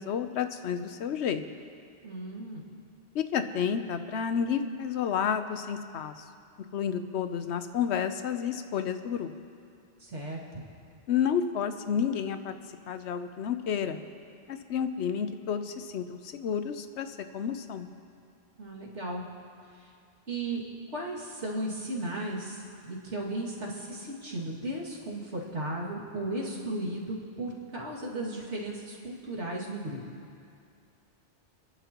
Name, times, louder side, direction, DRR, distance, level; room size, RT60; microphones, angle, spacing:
voice 1, 0.0-1.4 3.1-6.2 6.7-9.3 11.1-12.6 12.9-14.0 14.5-17.9, left 7 dB, 80° left, 9 dB, 1.0 m, -30 dB
voice 2, 2.0-2.6 10.0-10.6 18.6-19.2 19.8-19.9 20.3-20.6 20.9-30.0, right 1 dB, 90° right, -5 dB, 2.6 m, -35 dB
29.0 x 11.0 x 3.0 m, 2.4 s
omnidirectional pair, 1.1 m